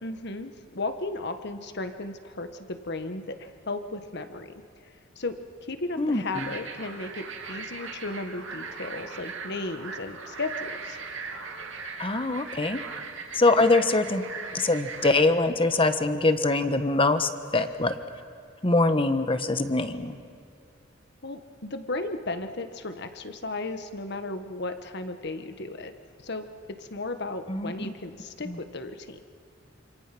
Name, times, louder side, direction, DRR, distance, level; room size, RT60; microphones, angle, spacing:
voice 1, 0.0-4.5 5.1-11.0 21.2-25.9 26.2-29.2, left 2 dB, 60° left, 8 dB, 1.6 m, -35 dB
voice 2, 6.0-6.5 12.0-12.8 13.3-14.3 14.5-17.9 18.6-20.2 27.5-27.9 28.4-28.6, left 2 dB, 30° left, 9 dB, 1.3 m, -23 dB
sound 1, 6.3-15.1, right 4 dB, 75° right, 2.6 m, -39 dB
27.5 x 26.5 x 6.1 m, 2.5 s
head